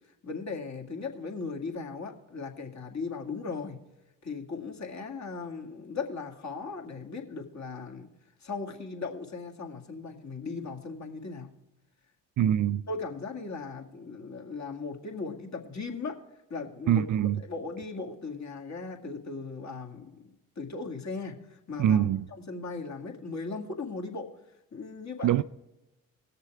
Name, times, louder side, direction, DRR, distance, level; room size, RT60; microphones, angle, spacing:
voice 1, 0.2-3.8 4.2-8.1 8.4-11.5 12.9-16.2 16.5-17.1 17.5-22.1 22.5-24.3 24.7-25.4, left 4 dB, 40° left, 2.1 m, -38 dB
voice 2, 12.4-12.8 16.9-17.4 21.8-22.3 25.2-25.4, right 10 dB, 50° right, 0.5 m, -24 dB
18.0 x 6.7 x 4.6 m
supercardioid pair, 55°, 42 cm